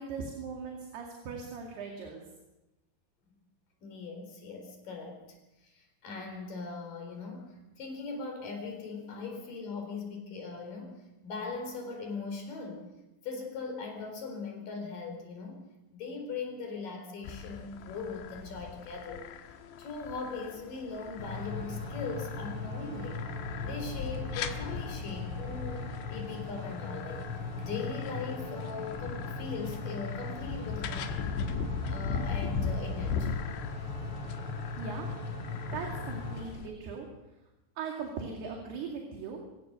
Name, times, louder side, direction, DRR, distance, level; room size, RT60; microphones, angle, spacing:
voice 1, 0.0-2.3 34.8-35.1 35.7-37.1 37.8-39.4, right 5 dB, 65° right, 1 dB, 4.2 m, -39 dB
voice 2, 3.8-5.2 5.6-12.9 13.2-15.6 15.9-23.2 23.6-27.2 27.6-31.3 31.9-33.3, left 4 dB, 50° left, 3 dB, 5.7 m, -40 dB
sound 1, 17.2-36.7, left 6 dB, 75° left, 3.6 m, -39 dB
sound 2, 21.2-36.4, left 3 dB, 30° left, 5.0 m, -39 dB
26.0 x 16.0 x 6.7 m, 1.0 s
omnidirectional pair, 5.3 m